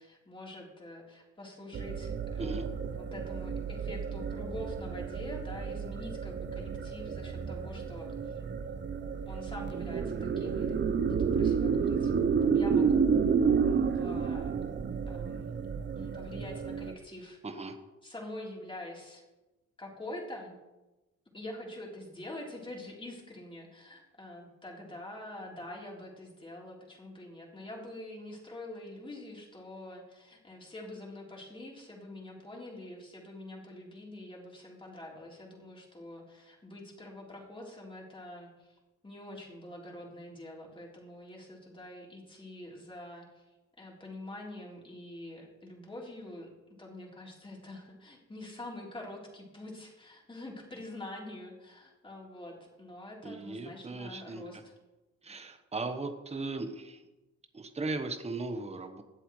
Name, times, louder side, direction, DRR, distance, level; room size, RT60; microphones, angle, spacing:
voice 1, 0.0-8.4 9.3-12.1 12.4-13.1 13.6-14.5 15.1-15.6 16.0-17.6 18.0-19.2 19.8-20.5 21.3-38.8 39.0-43.4 43.8-46.5 46.8-54.7, left 1 dB, 15° left, -2 dB, 3.8 m, -45 dB
sound 1, 1.7-16.9, right 6 dB, 35° right, 0.8 m, -31 dB
voice 2, 17.4-17.8 53.2-54.4 55.2-57.1 57.5-59.0, right 3 dB, 20° right, 6 dB, 1.2 m, -37 dB
20.5 x 7.8 x 3.2 m, 1.1 s
cardioid pair, 90°, 30 cm